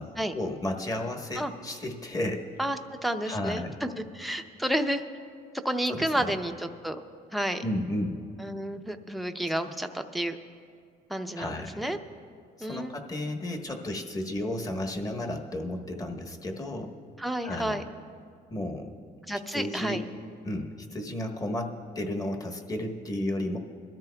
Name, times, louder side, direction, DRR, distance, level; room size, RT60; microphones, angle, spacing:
voice 1, 0.0-2.4 3.3-3.7 5.9-6.3 7.6-8.2 9.6-9.7 11.4-11.8 12.6-16.9 17.4-17.8 18.5-18.9 19.5-20.0 20.4-23.6, left 1 dB, 20° left, 3 dB, 1.2 m, -33 dB
voice 2, 2.6-5.0 5.6-7.0 7.3-7.6 8.4-10.4 11.1-12.0 12.6-13.0 17.2-17.8 19.3-20.0, equal, ahead, 5 dB, 0.6 m, -31 dB
22.5 x 13.5 x 2.3 m, 2.2 s
cardioid pair, 110°, 17 cm